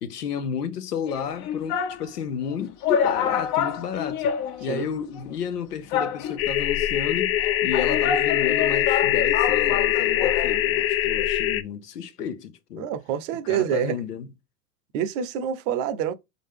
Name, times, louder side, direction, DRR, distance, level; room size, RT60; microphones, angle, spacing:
voice 1, 0.0-4.3 4.6-12.9 13.5-14.3, left 7 dB, 90° left, 0.9 m, -32 dB
sound 1, 1.1-2.0 2.5-2.6 2.8-4.9 5.2-5.3 5.9-6.6 7.4-10.6 10.8-10.9, left 8 dB, 55° left, 1.1 m, -27 dB
sound 2, 6.4-11.6, left 12 dB, 30° left, 0.4 m, -23 dB
voice 2, 12.8-14.0 14.9-16.1, right 9 dB, 55° right, 0.8 m, -26 dB
4.1 x 3.8 x 3.5 m
hypercardioid pair, 100°, 45 cm